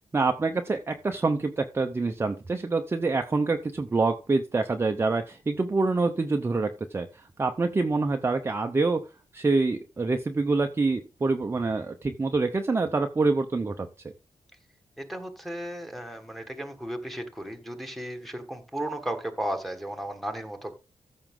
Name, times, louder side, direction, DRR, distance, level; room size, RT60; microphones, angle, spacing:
voice 1, 0.1-9.1 9.3-13.9, right 3 dB, 20° right, 5 dB, 0.6 m, -26 dB
voice 2, 15.0-20.7, right 1 dB, ahead, 6 dB, 1.5 m, -35 dB
14.0 x 6.0 x 3.7 m, 0.30 s
wide cardioid pair, 170°, 12 cm